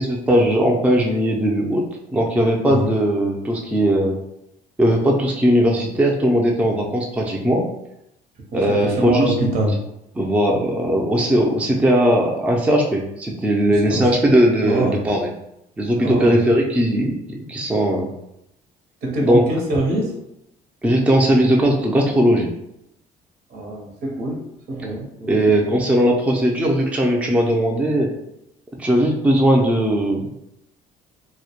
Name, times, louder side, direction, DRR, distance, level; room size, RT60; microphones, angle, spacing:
voice 1, 0.0-1.8 2.1-4.2 4.8-7.7 8.5-9.3 10.2-15.3 15.8-18.1 19.2-19.4 20.8-22.5 25.3-28.1 28.8-30.4, equal, 10° right, -1 dB, 0.4 m, -18 dB
voice 2, 8.5-9.8 13.8-14.1 14.6-15.0 16.0-16.4 19.0-20.1 23.5-24.4 24.7-25.7, right 1 dB, 70° right, 0 dB, 0.7 m, -24 dB
2.1 x 2.1 x 2.8 m, 0.81 s
cardioid pair, 110°, 17 cm